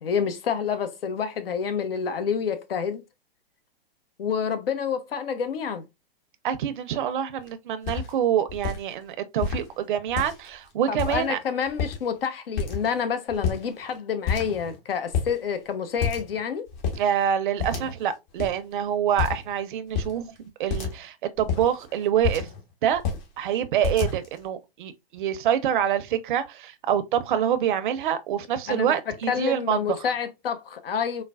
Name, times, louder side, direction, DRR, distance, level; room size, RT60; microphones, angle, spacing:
voice 1, 0.0-3.0 4.2-5.8 10.9-16.7 28.7-28.9 29.3-31.2, left 7 dB, 75° left, 0.7 m, -28 dB
voice 2, 6.4-11.4 17.0-20.3 20.6-22.5 22.8-23.0 23.4-29.8, right 9 dB, 55° right, 0.5 m, -26 dB
sound 1, 7.4-7.5 7.8-8.1 8.5-8.8 9.4-9.6 10.1-10.5 11.0-11.4 11.7-12.2 12.6-13.0 13.3-14.0 14.2-14.8 15.1-15.3 16.0-16.4 16.7-17.0 17.6-18.1 18.4-18.5 19.2-19.5 19.9-20.1 20.7-21.0 21.4-22.6 22.9-23.3 23.8-24.4, left 6 dB, 50° left, 1.1 m, -29 dB
4.0 x 2.1 x 2.2 m
hypercardioid pair, 110°, 29 cm